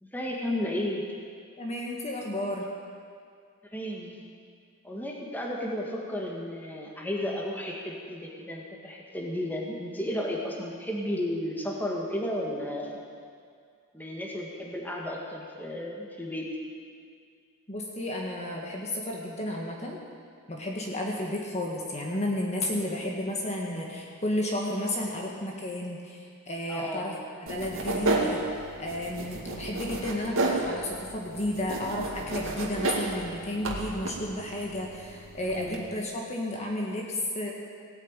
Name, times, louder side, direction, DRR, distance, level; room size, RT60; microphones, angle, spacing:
voice 1, 0.1-1.1 3.7-4.2 4.8-13.0 13.9-16.5 26.7-27.1 35.4-35.9, left 1 dB, 10° left, -2 dB, 2.0 m, -33 dB
voice 2, 1.6-2.7 17.7-20.0 20.5-27.1 27.5-37.5, left 1 dB, 30° left, -1 dB, 1.7 m, -32 dB
sound 1, 27.5-35.8, right 2 dB, 65° right, 2.1 m, -32 dB
17.5 x 9.1 x 9.0 m, 2.2 s
head